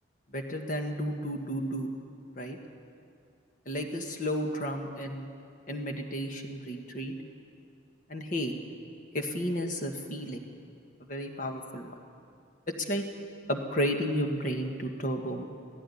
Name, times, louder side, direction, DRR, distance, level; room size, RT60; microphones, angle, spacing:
voice 1, 0.3-1.9 2.4-2.6 3.7-5.3 5.7-7.1 8.1-8.5 9.1-10.4 11.0-11.9 12.7-13.0 13.5-15.5, equal, 40° left, 3 dB, 1.7 m, -32 dB
16.5 x 16.0 x 10.0 m, 2.4 s
head